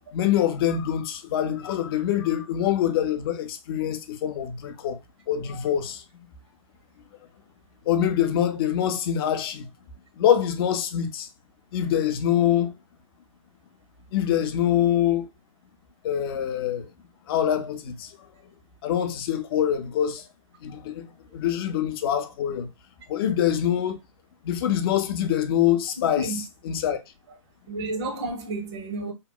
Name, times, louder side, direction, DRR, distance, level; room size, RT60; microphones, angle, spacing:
voice 1, 0.1-5.0 5.3-6.0 7.9-9.7 10.2-11.3 11.7-12.7 14.1-15.3 16.0-16.9 17.3-18.1 18.8-20.3 20.6-21.1 21.3-22.7 23.1-24.0 24.4-26.3 26.6-27.0, left 10 dB, 40° left, 0.5 m, -24 dB
voice 2, 26.0-26.4 27.7-29.1, right 2 dB, 50° right, 0.9 m, -31 dB
2.8 x 2.0 x 2.3 m
hypercardioid pair, 130°, 18 cm